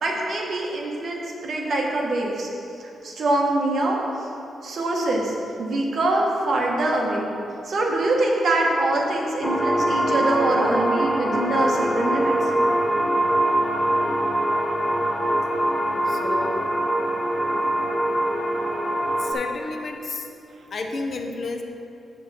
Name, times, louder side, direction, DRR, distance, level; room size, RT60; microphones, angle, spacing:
voice 1, 0.0-2.5 2.8-4.3 4.6-7.3 7.6-12.5, right 2 dB, 50° right, -2 dB, 1.3 m, -24 dB
sound 1, 9.4-19.3, right 1 dB, 10° left, 0.8 m, -23 dB
voice 2, 16.1-16.7 19.2-20.3 20.7-21.6, left 3 dB, 45° left, 4 dB, 0.6 m, -31 dB
7.5 x 7.3 x 4.2 m, 2.8 s
wide cardioid pair, 145°, 0 cm